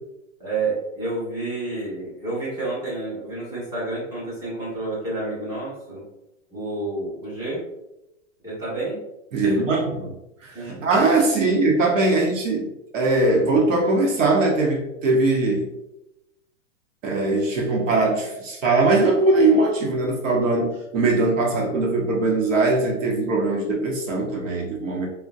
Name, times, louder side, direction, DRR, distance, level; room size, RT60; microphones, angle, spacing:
voice 1, 0.4-6.0 6.5-7.6 8.4-9.0 9.6-9.7 10.5-10.8, right 2 dB, 10° right, -9 dB, 1.3 m, -29 dB
voice 2, 9.3-10.1 10.4-12.7 12.9-15.7 17.0-25.1, right 2 dB, 90° right, 0 dB, 0.9 m, -21 dB
3.5 x 2.2 x 2.6 m, 0.88 s
hypercardioid pair, 155°, 38 cm